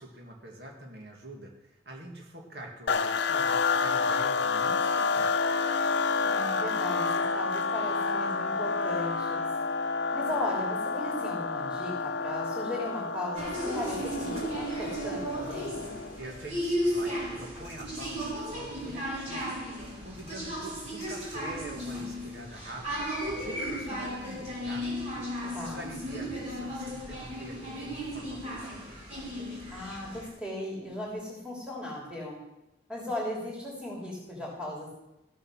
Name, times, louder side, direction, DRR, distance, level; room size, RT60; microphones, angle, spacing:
voice 1, 0.0-5.3 16.2-24.9 25.3-28.9, right 1 dB, 65° right, 1 dB, 2.0 m, -45 dB
sound 1, 2.9-16.3, left 4 dB, 75° left, 0.6 m, -29 dB
voice 2, 6.2-9.5 10.1-15.8 25.5-25.9 29.7-32.4 32.9-34.9, left 1 dB, 5° right, -5 dB, 3.2 m, -37 dB
sound 2, 13.3-30.3, equal, 35° right, 4.0 m, -35 dB
15.0 x 7.2 x 6.3 m, 0.93 s
head